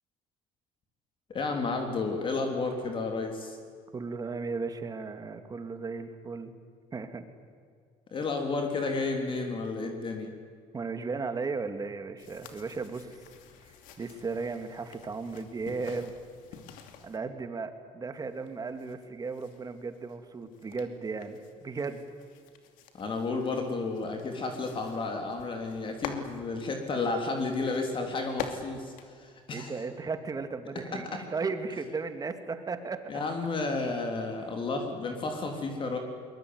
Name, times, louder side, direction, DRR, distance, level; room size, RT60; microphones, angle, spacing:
voice 1, 1.3-3.6 8.1-10.3 22.9-29.7 30.9-31.2 33.1-36.0, left 3 dB, 40° left, 3 dB, 3.5 m, -32 dB
voice 2, 3.9-6.6 6.9-7.2 10.7-13.2 13.6-16.1 17.0-22.1 29.5-33.2, right 4 dB, 25° right, 8 dB, 2.4 m, -35 dB
sound 1, 12.2-17.2 18.2-30.0, left 7 dB, 75° left, 2.8 m, -47 dB
22.5 x 21.5 x 9.7 m, 2.1 s
cardioid pair, 105°, 14 cm